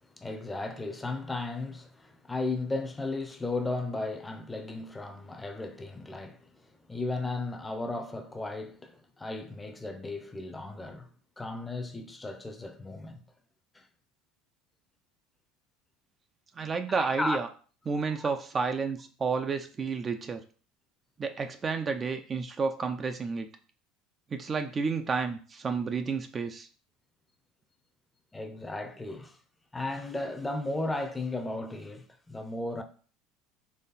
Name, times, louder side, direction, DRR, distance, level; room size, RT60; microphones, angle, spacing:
voice 1, 0.2-11.1 11.4-13.2 13.7-13.9 16.9-17.4 18.1-18.3 28.3-29.4 29.7-32.8, left 2 dB, 15° left, 0.7 m, -35 dB
voice 2, 16.6-17.5 17.9-20.4 21.2-23.5 24.3-26.7, right 5 dB, 30° right, 0.5 m, -31 dB
4.2 x 3.1 x 4.0 m
supercardioid pair, 95°, 0 cm